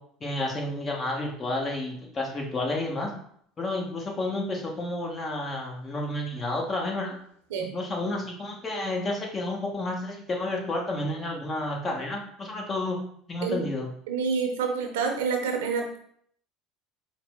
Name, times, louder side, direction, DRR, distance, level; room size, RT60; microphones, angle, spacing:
voice 1, 0.2-3.1 3.6-7.2 7.6-13.0 13.3-13.9, left 2 dB, 35° left, 0 dB, 1.1 m, -31 dB
voice 2, 14.1-16.0, right 5 dB, 80° right, 3 dB, 0.7 m, -28 dB
4.6 x 2.0 x 3.5 m, 0.64 s
hypercardioid pair, 75°, 0 cm